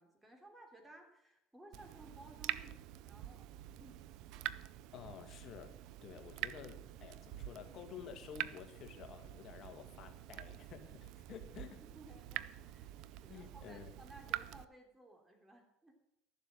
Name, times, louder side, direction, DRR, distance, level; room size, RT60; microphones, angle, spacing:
voice 1, 0.0-4.0 11.8-15.9, right 1 dB, 10° right, 3 dB, 3.4 m, -58 dB
Water tap faucet / Drip, 1.7-14.6, right 14 dB, 65° right, 0.5 m, -46 dB
voice 2, 4.9-5.7 6.0-11.8 13.3-13.9, left 8 dB, 45° left, 6 dB, 1.8 m, -51 dB
14.0 x 7.4 x 7.5 m, 0.79 s
supercardioid pair, 100°, 0 cm